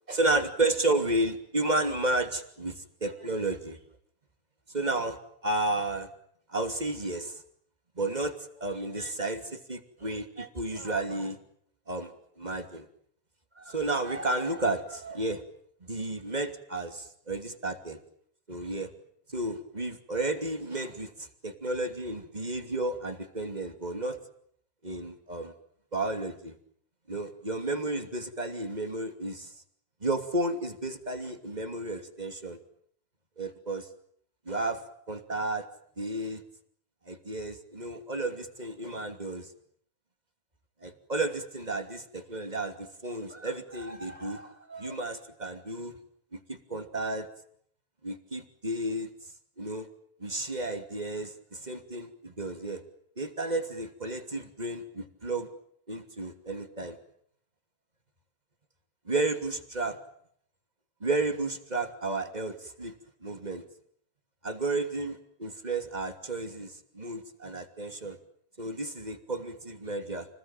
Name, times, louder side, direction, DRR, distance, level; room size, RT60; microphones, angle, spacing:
voice 1, 0.1-3.8 4.7-6.1 6.5-7.4 8.0-11.4 11.9-12.1 12.4-12.8 13.6-15.4 15.8-18.0 18.5-18.9 19.3-24.2 24.8-25.5 25.9-26.5 27.1-29.5 30.0-32.6 33.4-33.9 34.5-34.8 35.1-35.6 36.0-36.4 37.1-39.5 40.8-46.0 46.3-47.3 48.0-49.1 49.6-49.9 50.2-52.8 53.2-55.5 55.9-57.0 59.1-60.0 61.0-62.9 63.2-63.6 64.4-68.2 68.6-70.3, right 2 dB, 15° right, 6 dB, 2.6 m, -32 dB
30.0 x 20.5 x 9.1 m, 0.66 s
omnidirectional pair, 3.3 m